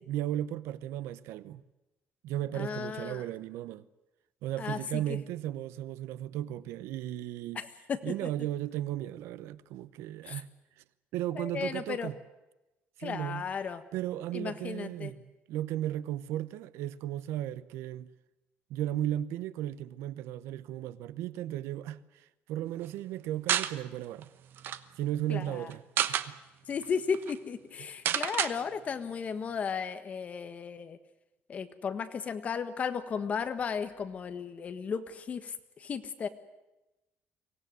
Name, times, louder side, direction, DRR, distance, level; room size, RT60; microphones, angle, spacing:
voice 1, 0.1-1.6 2.2-3.9 4.4-7.6 8.0-10.5 10.8-10.9 11.1-12.2 13.0-13.5 13.9-18.1 18.7-24.3 25.0-25.8 26.1-26.4, right 13 dB, 90° right, 0.9 m, -35 dB
voice 2, 2.5-3.2 4.6-5.2 7.5-8.3 10.2-10.4 11.3-12.1 13.0-13.8 14.3-15.1 25.3-25.7 26.7-31.0 31.5-36.3, left 6 dB, 35° left, 1.5 m, -35 dB
sound 1, 23.5-23.7 24.2-24.3 24.5-24.8 25.7-26.3 26.8-26.9 27.1-27.3 28.1-28.5, right 10 dB, 55° right, 1.0 m, -29 dB
24.0 x 18.0 x 9.5 m
cardioid pair, 155°, 4 cm